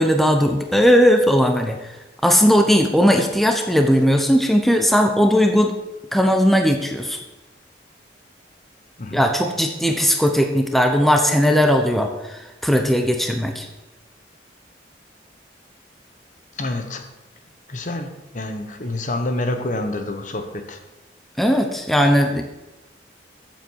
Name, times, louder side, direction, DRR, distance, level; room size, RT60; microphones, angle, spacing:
voice 1, 0.0-1.8 2.2-5.7 6.1-7.2 9.1-13.7 21.4-22.4, equal, ahead, 4 dB, 0.9 m, -17 dB
voice 2, 16.6-17.0 17.7-20.8, left 2 dB, 45° left, 7 dB, 1.1 m, -27 dB
14.0 x 7.8 x 4.7 m, 1.0 s
head